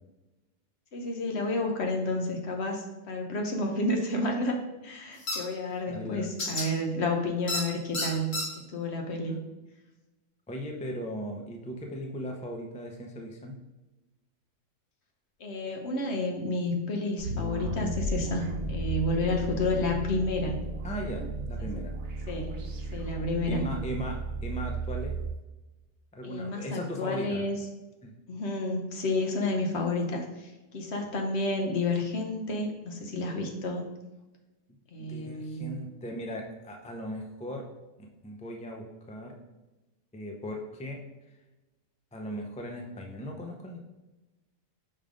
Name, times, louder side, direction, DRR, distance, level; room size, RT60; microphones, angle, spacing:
voice 1, 0.9-4.6 4.8-8.3 8.7-9.4 15.4-20.6 21.6-21.7 22.3-22.6 22.9-23.6 26.2-27.6 28.3-33.9 34.9-35.7, left 2 dB, 60° left, 2 dB, 1.1 m, -30 dB
sound 1, 5.3-5.4 6.4-6.6 7.5-7.6 7.9-8.4, left 2 dB, 80° left, 1.8 m, -29 dB
voice 2, 5.9-6.3 10.5-13.6 20.8-21.9 23.5-25.2 26.1-27.4 28.0-28.1 35.0-37.7 38.0-39.4 40.1-41.0 42.1-43.8, equal, 10° left, 2 dB, 0.3 m, -38 dB
sound 2, 17.2-25.3, right 2 dB, 65° right, 1.2 m, -34 dB
5.6 x 3.6 x 5.0 m, 1.1 s
omnidirectional pair, 1.3 m